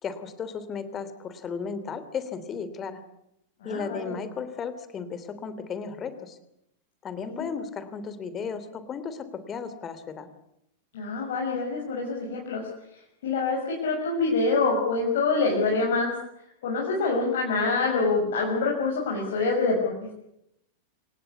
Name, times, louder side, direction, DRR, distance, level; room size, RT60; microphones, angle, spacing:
voice 1, 0.0-3.0 3.6-6.4 7.0-10.3, left 6 dB, 25° left, 13 dB, 3.1 m, -35 dB
voice 2, 3.6-4.2 7.3-7.5 10.9-12.6 13.2-16.1 16.6-20.1, left 3 dB, 55° left, -2 dB, 6.3 m, -26 dB
27.5 x 18.0 x 8.5 m, 0.81 s
figure-of-eight pair, 90°, 0 cm